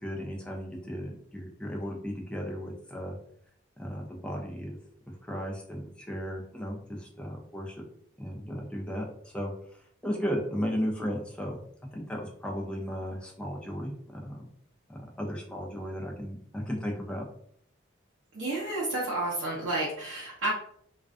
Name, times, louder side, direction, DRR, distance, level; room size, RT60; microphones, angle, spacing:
voice 1, 0.0-3.2 3.8-4.8 5.2-7.8 8.2-11.6 11.9-14.4 14.9-17.3, equal, 5° left, -1 dB, 0.4 m, -35 dB
voice 2, 18.3-20.5, right 2 dB, 80° right, -6 dB, 0.6 m, -31 dB
2.4 x 2.2 x 2.4 m, 0.65 s
head